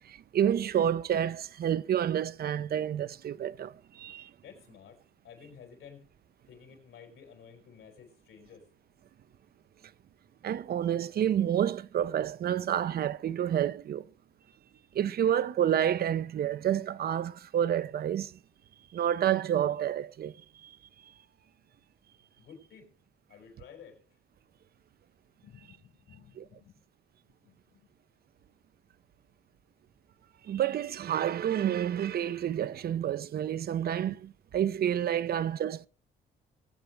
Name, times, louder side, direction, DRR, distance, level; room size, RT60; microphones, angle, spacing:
voice 1, 0.0-4.3 10.4-14.1 14.9-18.3 18.9-20.4 20.6-20.8 26.4-26.5 30.4-35.9, right 10 dB, 50° right, 0.5 m, -29 dB
voice 2, 4.4-5.0 5.2-6.0 6.5-8.7 22.4-22.9 23.3-24.0 25.4-26.8 27.4-27.9 35.6-35.7, left 7 dB, 85° left, 5.3 m, -53 dB
22.5 x 7.9 x 3.2 m
cardioid pair, 90°, 20 cm